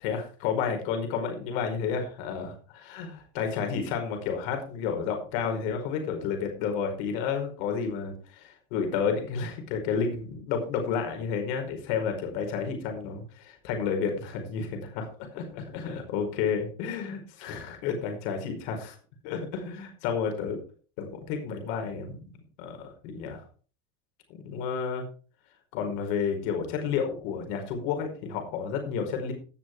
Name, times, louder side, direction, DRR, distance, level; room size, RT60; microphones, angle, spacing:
voice 1, 0.0-19.0 19.2-20.6 21.0-22.2 22.6-23.4 24.3-25.0 25.7-29.3, left 6 dB, 75° left, 4 dB, 5.0 m, -31 dB
17.5 x 7.0 x 4.6 m, 0.38 s
supercardioid pair, 120°, 16 cm